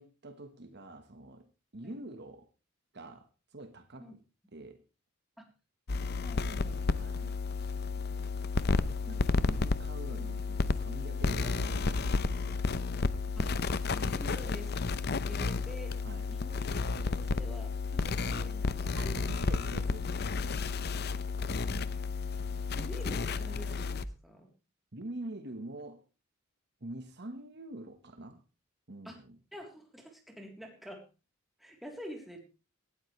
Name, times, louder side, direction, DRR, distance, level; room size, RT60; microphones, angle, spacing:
voice 1, 0.0-2.5 2.9-4.2 4.5-4.8 6.9-7.4 9.0-12.8 16.0-16.3 18.9-20.1 24.9-26.0 26.8-28.4 28.9-29.4, right 2 dB, 55° right, 1.4 m, -46 dB
sound 1, 5.9-24.1, left 4 dB, 55° left, 0.7 m, -32 dB
voice 2, 6.2-6.9 13.4-14.8 15.2-16.0 16.3-16.6 17.0-19.5 21.4-24.5 29.0-29.2 29.5-31.0 31.6-32.4, equal, ahead, 3.4 m, -47 dB
18.5 x 12.5 x 3.3 m
head